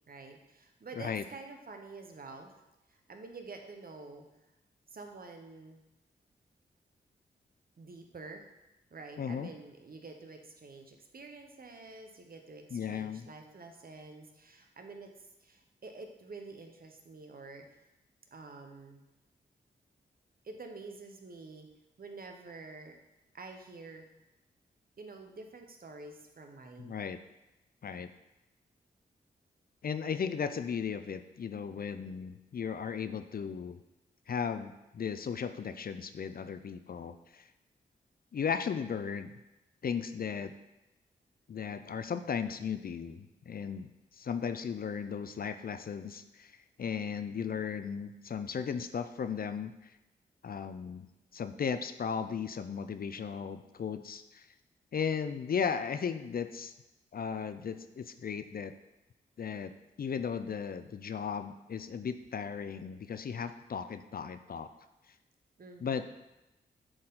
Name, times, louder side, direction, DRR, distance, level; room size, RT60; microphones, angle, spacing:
voice 1, 0.1-2.5 2.9-4.3 4.9-5.8 7.8-8.4 8.9-15.1 15.4-17.6 18.3-19.0 20.4-21.7 22.0-22.9 23.3-24.1 25.0-27.0 65.6-66.1, right 3 dB, 50° right, 4 dB, 1.1 m, -48 dB
voice 2, 9.2-9.5 12.7-13.3 26.8-27.2 27.8-28.1 29.8-33.8 34.3-37.4 38.3-39.3 39.8-40.5 41.5-43.9 44.2-46.5 46.8-49.7 50.4-51.1 51.3-54.5 54.9-56.7 57.1-58.7 59.4-59.7 60.0-64.7 65.8-66.0, left 6 dB, 50° left, 10 dB, 0.5 m, -36 dB
7.7 x 4.4 x 3.8 m, 0.97 s
supercardioid pair, 40°, 19 cm